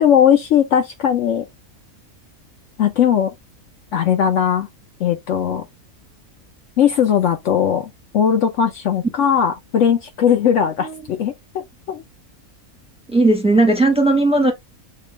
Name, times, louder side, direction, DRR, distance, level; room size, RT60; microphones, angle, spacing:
voice 1, 0.0-1.5 2.8-3.3 3.9-4.7 5.0-5.7 6.8-12.0, left 8 dB, 65° left, 0.9 m, -18 dB
voice 2, 13.1-14.5, right 2 dB, 5° right, 1.1 m, -16 dB
6.7 x 2.4 x 3.2 m
omnidirectional pair, 1.5 m